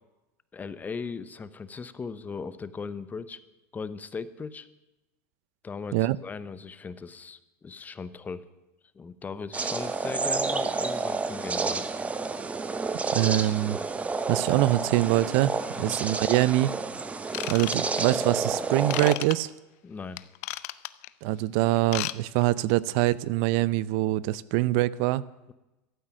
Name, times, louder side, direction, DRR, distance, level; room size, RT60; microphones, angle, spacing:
voice 1, 0.5-3.4 3.7-4.7 5.6-8.5 8.9-11.8 15.7-16.0 19.8-20.2, left 5 dB, 20° left, 14 dB, 0.8 m, -38 dB
sound 1, 9.5-19.2, right 4 dB, 15° right, 0.9 m, -30 dB
voice 2, 13.1-13.8 14.3-15.5 15.8-16.7 17.5-19.5 21.2-25.2, right 16 dB, 65° right, 20 dB, 0.5 m, -24 dB
Ratchet pawl / Tools, 17.3-18.2 18.9-19.3 20.2-21.1 21.8-22.2 22.4-22.6 23.1-23.2, left 19 dB, 70° left, 0.6 m, -33 dB
12.5 x 8.9 x 10.0 m, 1.0 s
supercardioid pair, 120°, 8 cm